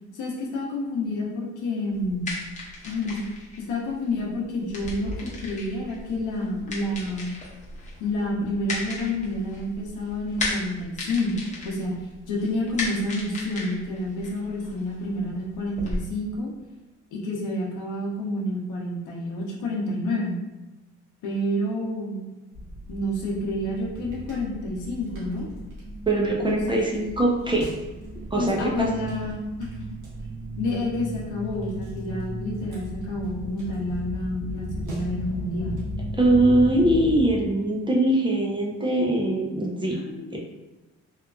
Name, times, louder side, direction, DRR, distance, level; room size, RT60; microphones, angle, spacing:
voice 1, 0.1-2.3 2.8-3.2 3.7-7.3 8.0-11.4 11.6-12.0 12.2-16.5 17.1-20.4 21.2-22.3 22.9-25.5 26.4-26.8 28.3-29.4 30.6-35.8 39.9-40.4, left 1 dB, 85° left, -3 dB, 0.8 m, -29 dB
sound 1, 1.9-16.0, left 2 dB, 25° left, 0.8 m, -36 dB
sound 2, 22.5-37.3, equal, 90° right, 1.1 m, -36 dB
voice 2, 26.1-27.7 28.3-28.9 36.1-40.0 40.3-40.4, right 1 dB, 15° right, -2 dB, 0.5 m, -22 dB
2.9 x 2.4 x 2.3 m, 1.1 s
cardioid pair, 90°, 30 cm